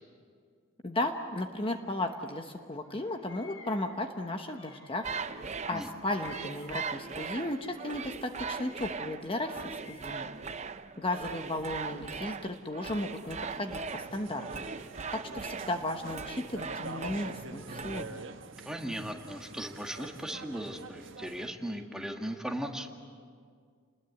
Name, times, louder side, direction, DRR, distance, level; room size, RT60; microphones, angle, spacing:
voice 1, 0.8-5.0 5.7-10.3 11.0-14.6 15.1-18.2, left 1 dB, 25° left, 5 dB, 1.1 m, -35 dB
Bird vocalization bird call bird song, 1.8-2.6 2.8-7.9 8.2-10.6 11.1-12.1 12.8-13.9, left 4 dB, 90° left, 6.3 m, -57 dB
sound 1, 5.0-18.0, right 5 dB, 35° right, 0.6 m, -40 dB
sound 2, 13.9-21.5, right 3 dB, 65° right, 1.4 m, -46 dB
voice 2, 18.6-22.9, equal, 5° right, 2 dB, 1.7 m, -37 dB
29.5 x 20.5 x 8.4 m, 2.1 s
head